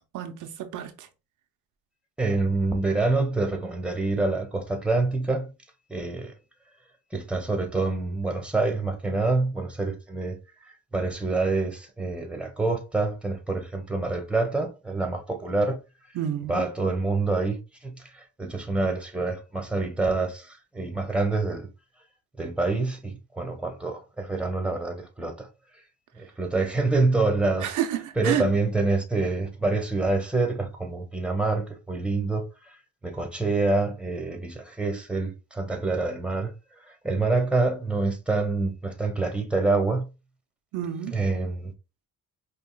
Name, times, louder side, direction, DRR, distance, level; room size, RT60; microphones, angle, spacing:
voice 1, 0.1-1.1 16.1-16.7 27.6-28.5 40.7-41.2, right 10 dB, 80° right, 0.7 m, -30 dB
voice 2, 2.2-5.5 5.9-6.3 7.1-10.4 10.6-15.8 16.5-21.7 22.4-25.5 26.2-27.7 28.2-32.8 33.0-36.5 36.9-40.1 41.1-41.7, right 3 dB, 5° right, 1.2 m, -26 dB
5.4 x 2.4 x 2.3 m
cardioid pair, 90°, 30 cm